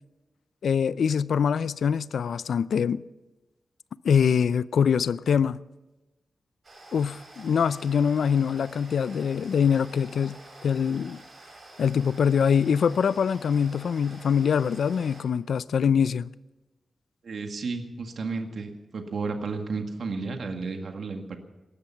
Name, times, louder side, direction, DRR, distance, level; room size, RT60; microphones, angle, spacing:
voice 1, 0.6-3.0 4.0-5.6 6.9-11.2 11.8-16.3, left 7 dB, 80° left, 0.4 m, -24 dB
sound 1, 6.6-15.2, right 2 dB, 35° right, 6.8 m, -48 dB
voice 2, 17.2-21.4, right 4 dB, 60° right, 1.9 m, -32 dB
19.0 x 13.5 x 5.8 m
wide cardioid pair, 150°, 0 cm